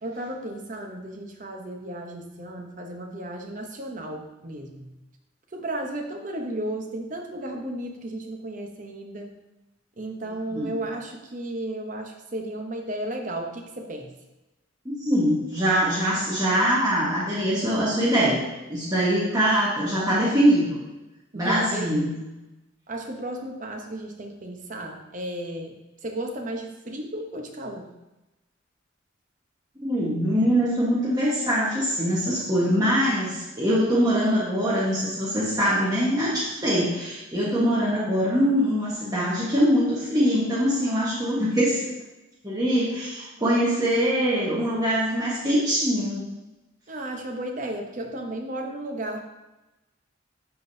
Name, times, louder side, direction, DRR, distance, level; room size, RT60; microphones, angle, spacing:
voice 1, 0.0-4.9 5.5-9.4 10.0-14.1 21.3-22.2 22.9-27.9 46.9-49.2, right 1 dB, 40° right, 3 dB, 0.8 m, -34 dB
voice 2, 14.8-20.8 21.3-22.1 29.8-41.9 42.4-46.2, equal, 20° right, -8 dB, 1.2 m, -23 dB
11.0 x 3.8 x 2.7 m, 1.0 s
head